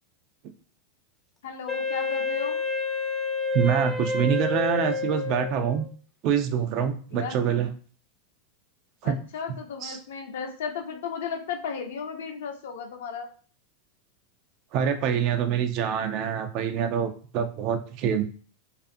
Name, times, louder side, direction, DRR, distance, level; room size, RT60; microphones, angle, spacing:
voice 1, 1.4-2.6 7.1-7.6 9.0-13.3, left 6 dB, 75° left, 4 dB, 0.6 m, -35 dB
Wind instrument woodwind instrument, 1.7-5.9, left 3 dB, 10° left, 0.5 m, -29 dB
voice 2, 3.5-5.8 6.2-7.7 9.0-9.1 9.8-10.0 14.7-18.2, right 8 dB, 50° right, 7 dB, 0.4 m, -25 dB
2.4 x 2.4 x 2.6 m, 0.41 s
hypercardioid pair, 100°, 0 cm